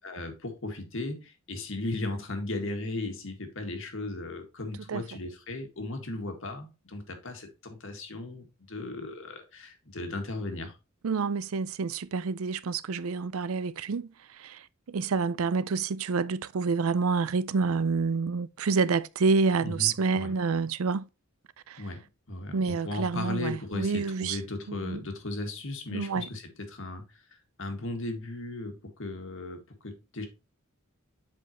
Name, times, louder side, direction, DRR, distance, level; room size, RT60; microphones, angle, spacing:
voice 1, 0.0-10.8 19.6-20.3 21.8-27.1 27.6-30.3, left 2 dB, 65° left, 1.8 m, -36 dB
voice 2, 11.0-14.1 14.4-21.1 21.7-21.8 22.5-24.4 24.7-25.0 25.9-26.3, right 4 dB, 75° right, 0.5 m, -28 dB
8.0 x 5.3 x 3.0 m
head